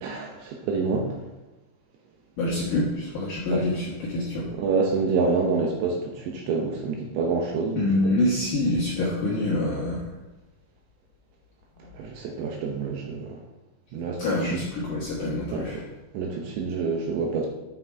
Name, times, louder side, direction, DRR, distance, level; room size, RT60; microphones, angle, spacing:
voice 1, 0.0-1.1 4.6-7.9 12.0-13.4 13.9-14.6 15.5-15.6 16.1-17.5, right 4 dB, 75° right, 1 dB, 2.8 m, -27 dB
voice 2, 2.4-4.5 7.7-10.1 14.2-15.9, left 1 dB, 65° left, -6 dB, 2.1 m, -26 dB
8.6 x 5.8 x 4.6 m, 1.1 s
omnidirectional pair, 5.7 m